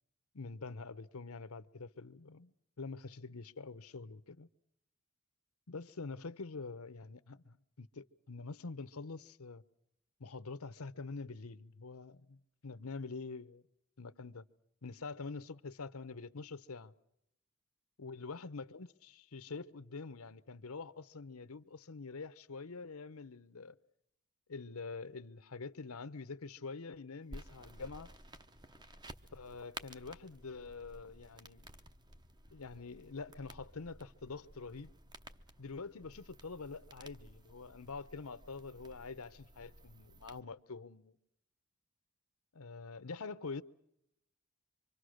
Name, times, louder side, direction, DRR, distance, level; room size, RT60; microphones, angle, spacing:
voice 1, 0.3-4.5 5.7-9.6 10.2-13.6 14.0-14.4 14.8-16.9 18.0-23.7 24.5-28.1 29.3-31.7 32.5-34.9 35.6-41.2 42.5-43.6, left 4 dB, 75° left, 0.9 m, -46 dB
sound 1, 27.3-40.4, right 1 dB, 20° right, 0.9 m, -54 dB
25.5 x 25.5 x 6.5 m
head